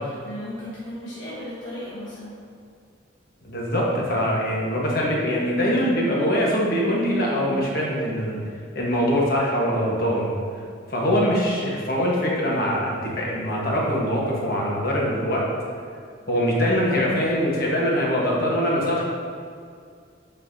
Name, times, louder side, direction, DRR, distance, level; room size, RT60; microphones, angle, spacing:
voice 1, 0.0-2.4, left 1 dB, 85° left, -8 dB, 1.2 m, -36 dB
voice 2, 3.4-8.4 8.7-10.3 10.9-15.4 16.3-19.0, equal, 55° left, -4 dB, 1.3 m, -23 dB
7.5 x 5.6 x 2.7 m, 2.3 s
head